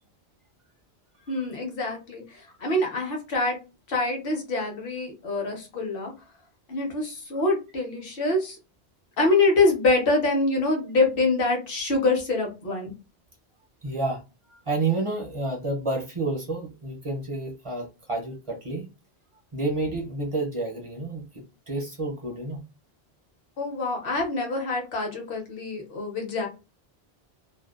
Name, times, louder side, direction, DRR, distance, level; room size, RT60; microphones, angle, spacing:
voice 1, 1.3-3.6 3.9-6.1 6.7-8.6 9.2-12.9 23.6-26.5, left 2 dB, 60° left, 1 dB, 1.0 m, -25 dB
voice 2, 13.8-14.2 14.5-18.9 19.5-22.6 24.1-24.2, right 2 dB, 40° right, 1 dB, 0.5 m, -30 dB
2.6 x 2.1 x 2.3 m, 0.28 s
omnidirectional pair, 1.1 m